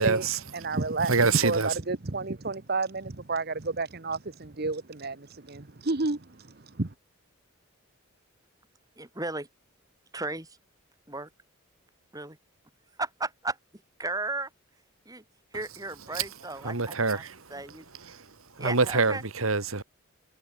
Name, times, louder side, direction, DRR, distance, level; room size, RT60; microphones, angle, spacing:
voice 1, 0.0-0.4 1.1-1.8 16.1-16.2 16.6-17.3 18.1-18.3 18.6-19.8, right 4 dB, 80° right, 2.1 m, -25 dB
voice 2, 0.5-1.1 1.4-6.5 6.8-6.9, right 3 dB, 50° right, 1.1 m, -30 dB
voice 3, 9.0-9.5 10.1-10.6 11.1-11.3 12.1-12.4 13.0-13.6 14.0-14.5 15.1-15.2 15.5-17.9 18.6-19.2, right 2 dB, 15° right, 3.7 m, -35 dB
head